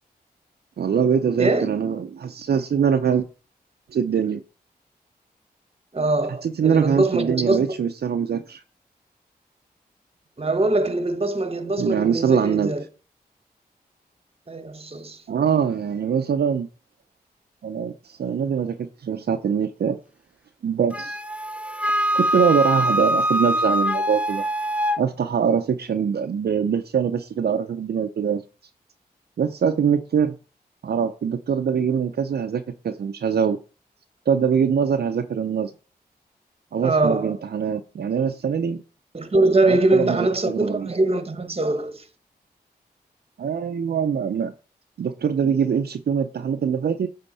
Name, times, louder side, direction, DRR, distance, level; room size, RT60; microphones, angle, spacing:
voice 1, 0.8-3.3 3.9-4.4 6.4-8.6 11.8-12.7 15.3-16.7 17.6-20.0 20.6-21.2 22.1-24.4 25.0-28.4 29.4-30.4 30.8-33.6 34.3-35.7 36.7-38.8 39.7-40.9 43.4-44.5 45.0-47.1, right 7 dB, 70° right, 0.6 m, -23 dB
voice 2, 5.9-7.8 10.4-12.8 14.5-15.2 36.8-37.4 39.1-42.0, right 2 dB, 35° right, 1.2 m, -22 dB
Wind instrument woodwind instrument, 20.9-25.0, equal, 5° right, 0.7 m, -23 dB
8.9 x 3.7 x 5.5 m
cardioid pair, 45°, 17 cm